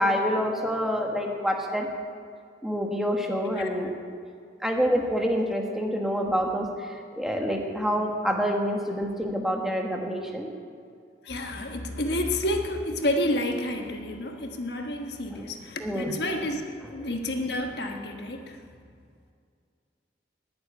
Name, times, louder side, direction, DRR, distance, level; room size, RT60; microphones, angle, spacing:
voice 1, 0.0-1.9 2.6-3.9 4.6-10.5 15.3-15.5 15.8-16.1 16.8-16.9, equal, ahead, 1 dB, 1.4 m, -27 dB
voice 2, 11.2-16.6 16.9-18.6, left 1 dB, 65° left, 4 dB, 1.3 m, -30 dB
10.5 x 10.0 x 10.0 m, 2.2 s
head